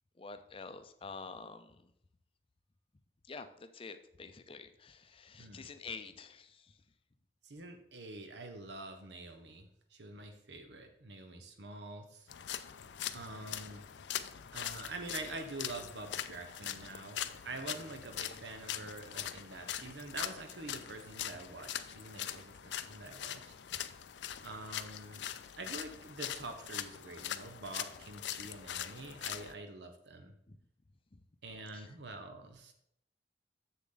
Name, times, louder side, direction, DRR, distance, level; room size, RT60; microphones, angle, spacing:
voice 1, 0.2-1.9 3.3-6.7 30.5-30.6 31.7-31.9, left 4 dB, 30° left, 10 dB, 0.5 m, -48 dB
voice 2, 7.4-12.3 13.1-13.9 14.5-23.5 24.4-25.3 25.6-30.3 31.4-32.7, right 2 dB, 85° right, 6 dB, 1.2 m, -46 dB
sound 1, 12.3-29.5, left 10 dB, 85° left, 0.4 m, -42 dB
7.4 x 6.8 x 3.9 m, 0.74 s
head